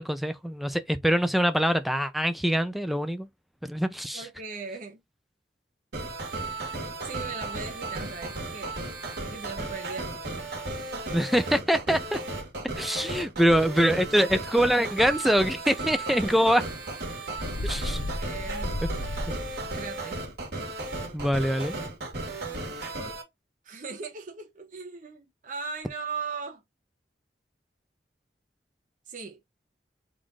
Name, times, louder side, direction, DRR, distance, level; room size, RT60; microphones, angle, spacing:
voice 1, 0.0-3.3 3.6-4.3 11.1-12.2 12.6-16.6 17.6-18.0 18.8-18.9 21.1-21.8, equal, ahead, 0.4 m, -24 dB
voice 2, 4.1-5.0 7.0-8.7 9.2-10.5 18.2-18.7 19.8-20.3 23.6-26.6 29.1-29.4, right 4 dB, 50° right, 0.8 m, -38 dB
sound 1, 5.9-23.2, right 2 dB, 65° right, 1.8 m, -35 dB
Bird, 17.4-19.8, left 1 dB, 55° left, 0.8 m, -33 dB
3.9 x 2.5 x 4.7 m
head